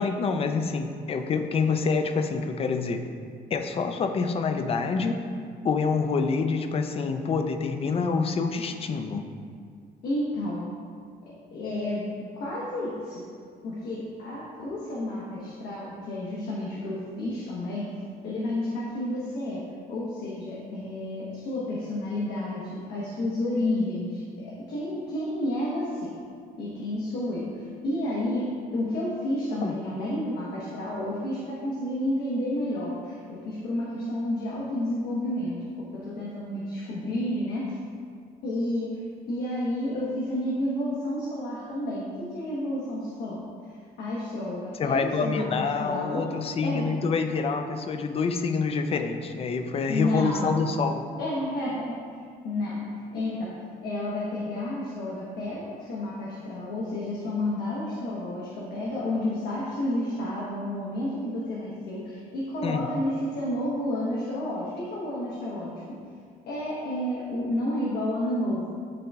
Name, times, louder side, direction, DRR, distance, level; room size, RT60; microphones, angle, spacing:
voice 1, 0.0-3.0 3.5-5.2 5.6-9.2 29.6-29.8 44.8-51.1 62.6-62.9, left 5 dB, 35° left, 7 dB, 0.5 m, -27 dB
voice 2, 10.0-10.7 11.3-12.1 12.4-13.3 13.6-17.9 18.2-19.6 19.9-26.2 26.6-37.8 38.4-43.4 43.7-46.3 46.6-46.9 49.9-50.6 51.2-52.0 52.4-52.8 53.1-53.5 53.8-66.0 66.5-68.7, left 1 dB, 75° left, -6 dB, 1.1 m, -31 dB
10.5 x 3.8 x 2.3 m, 2.2 s
cardioid pair, 110°, 17 cm